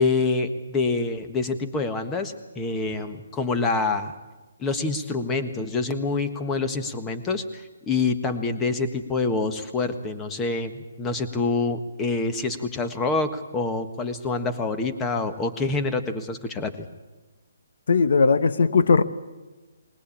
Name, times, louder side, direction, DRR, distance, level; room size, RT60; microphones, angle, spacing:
voice 1, 0.0-4.1 4.6-16.9, left 3 dB, 15° left, 1.5 m, -26 dB
voice 2, 17.9-19.0, left 4 dB, 65° left, 1.2 m, -18 dB
20.5 x 20.0 x 8.6 m
hypercardioid pair, 145°, 0 cm